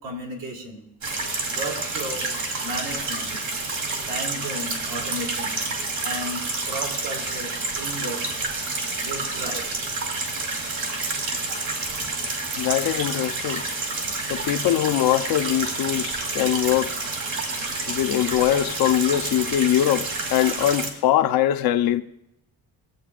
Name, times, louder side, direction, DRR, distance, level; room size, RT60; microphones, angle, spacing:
voice 1, 0.0-0.9 1.5-2.3 2.6-3.3 4.1-5.6 6.0-8.2 9.0-9.7, right 1 dB, 70° right, 3.3 m, -34 dB
sound 1, 1.0-20.9, right 3 dB, 55° right, 2.7 m, -29 dB
voice 2, 12.6-13.6 14.3-17.1 17.9-22.0, left 12 dB, 80° left, 0.8 m, -22 dB
21.0 x 8.2 x 2.5 m
cardioid pair, 115°, 36 cm